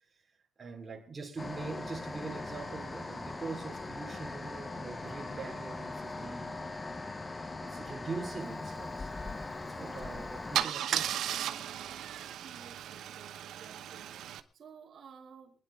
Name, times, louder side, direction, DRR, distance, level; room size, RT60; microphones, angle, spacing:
voice 1, 0.6-6.7 7.6-9.1 9.6-11.1 12.9-13.0, right 4 dB, 30° right, 2.8 m, -43 dB
sound 1, 1.4-10.6, left 3 dB, 20° left, 0.9 m, -40 dB
Car / Engine starting / Idling, 9.8-10.0 10.5-14.4, right 10 dB, 85° right, 1.0 m, -35 dB
voice 2, 12.4-15.6, right 6 dB, 60° right, 2.7 m, -54 dB
23.5 x 10.5 x 3.7 m
cardioid pair, 130°, 0 cm